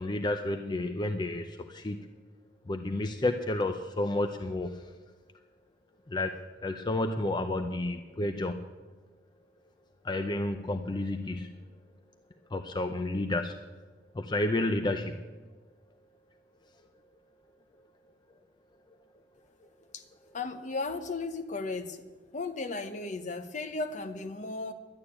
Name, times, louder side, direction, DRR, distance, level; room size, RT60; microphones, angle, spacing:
voice 1, 0.0-2.1 2.7-4.8 6.1-6.3 6.6-8.6 10.0-11.6 12.5-13.6 14.2-15.1, left 2 dB, 25° left, 7 dB, 0.5 m, -31 dB
voice 2, 20.3-22.0 22.3-24.7, left 3 dB, 45° left, 9 dB, 0.9 m, -35 dB
11.5 x 8.7 x 9.7 m, 1.4 s
head